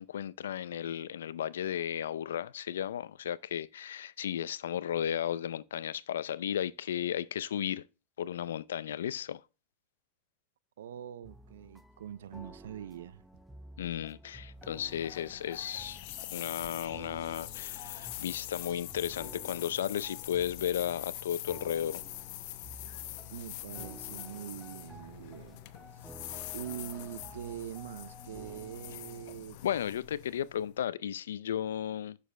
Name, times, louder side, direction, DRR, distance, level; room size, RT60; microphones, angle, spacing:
voice 1, 0.0-7.8 8.2-9.4 13.8-16.0 16.3-22.0 29.6-32.2, left 10 dB, 90° left, 0.5 m, -34 dB
voice 2, 10.8-13.3 23.3-25.6 26.0-26.1 26.5-29.6, right 10 dB, 85° right, 0.4 m, -43 dB
sound 1, 11.2-29.3, right 1 dB, 5° right, 0.7 m, -52 dB
sound 2, 14.6-30.8, left 15 dB, 65° left, 0.8 m, -44 dB
7.1 x 6.5 x 3.2 m
hypercardioid pair, 115°, 0 cm